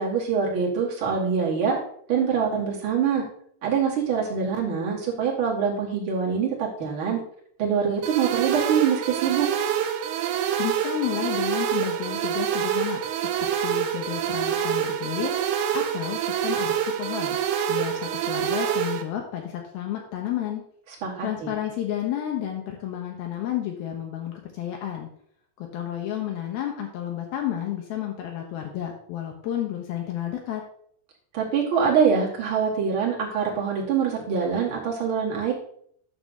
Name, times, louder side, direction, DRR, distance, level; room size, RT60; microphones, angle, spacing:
voice 1, 0.0-1.8 2.1-3.2 3.6-7.2 7.6-9.5 21.0-21.5 31.3-35.5, right 6 dB, 40° right, -3 dB, 2.5 m, -24 dB
sound 1, 8.0-19.0, right 9 dB, 80° right, 2.6 m, -26 dB
voice 2, 10.6-13.0 13.4-15.4 15.7-17.4 17.7-20.6 21.2-25.1 25.6-30.6, left 11 dB, 75° left, 1 dB, 2.8 m, -31 dB
9.2 x 4.0 x 6.4 m, 0.65 s
omnidirectional pair, 4.5 m